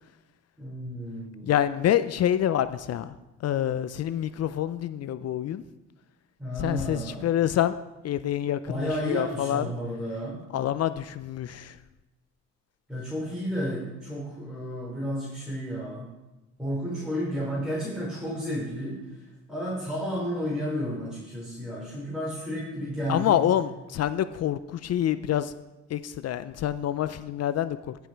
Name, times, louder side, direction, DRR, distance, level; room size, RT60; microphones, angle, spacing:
voice 1, 0.6-1.5 6.4-7.3 8.7-10.4 12.9-16.1 16.6-19.0 19.5-23.5, equal, ahead, -6 dB, 3.2 m, -32 dB
voice 2, 1.4-3.1 3.4-5.6 6.6-7.8 8.0-9.6 10.5-11.8 23.1-25.5 25.9-28.0, left 11 dB, 55° left, 13 dB, 0.5 m, -27 dB
14.5 x 5.2 x 4.6 m, 1.0 s
cardioid pair, 90°, 30 cm